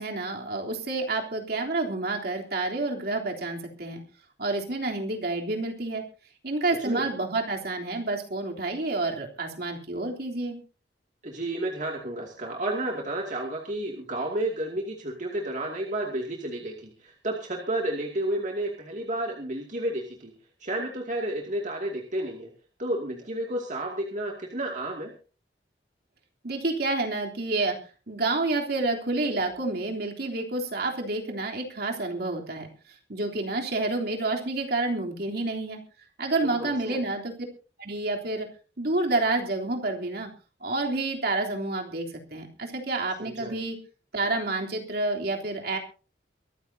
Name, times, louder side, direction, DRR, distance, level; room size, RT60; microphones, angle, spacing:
voice 1, 0.0-4.0 4.4-6.0 6.4-10.6 26.4-27.8 28.1-32.7 33.1-35.8 36.2-37.3 37.8-38.5 38.8-40.3 40.6-43.8 44.1-45.8, right 2 dB, 60° right, 1 dB, 3.4 m, -29 dB
voice 2, 11.2-20.3 20.6-22.5 22.8-25.1 36.4-37.0 43.2-43.5, right 1 dB, 45° right, 0 dB, 2.4 m, -31 dB
23.5 x 14.0 x 2.8 m, 0.36 s
head